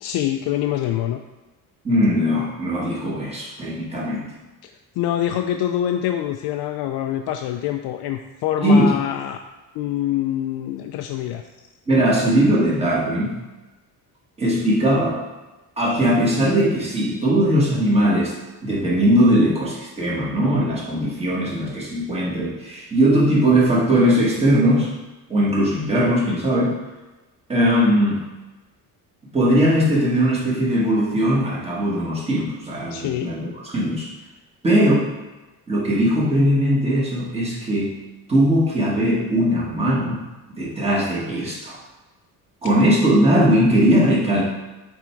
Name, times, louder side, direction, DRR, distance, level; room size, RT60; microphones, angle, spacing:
voice 1, 0.0-1.2 5.0-9.4 9.7-11.4 32.9-33.4, left 11 dB, 90° left, 5 dB, 0.5 m, -25 dB
voice 2, 1.8-4.3 8.6-8.9 11.9-13.4 14.4-15.2 15.8-18.3 18.6-24.9 25.3-26.8 27.5-28.3 29.3-34.1 34.6-35.1 35.7-38.0 38.3-40.2 40.6-41.8 42.6-44.4, equal, 15° right, -5 dB, 1.6 m, -19 dB
7.5 x 3.6 x 4.5 m, 1.1 s
cardioid pair, 165°, 37 cm